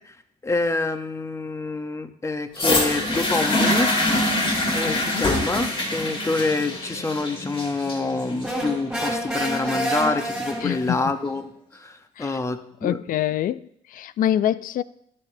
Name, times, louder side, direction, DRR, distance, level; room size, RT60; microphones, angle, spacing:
voice 1, 0.4-3.9 4.7-13.0, left 3 dB, 15° left, 0.8 m, -27 dB
sound 1, 2.5-10.5 11.4-11.5, left 1 dB, 30° left, 2.3 m, -25 dB
voice 2, 4.7-5.3 10.6-11.0 12.2-12.4 12.8-13.6 13.9-14.8, left 11 dB, 55° left, 0.4 m, -25 dB
sound 2, 8.4-11.1, equal, ahead, 2.7 m, -28 dB
13.0 x 10.0 x 2.7 m
cardioid pair, 110°, 17 cm